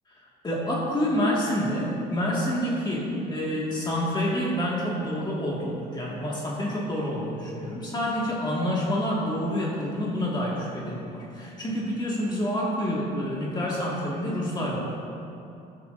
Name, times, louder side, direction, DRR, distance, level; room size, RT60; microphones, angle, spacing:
voice 1, 0.4-14.8, equal, 25° left, -5 dB, 1.8 m, -28 dB
13.5 x 10.5 x 2.6 m, 2.7 s
cardioid pair, 110°, 17 cm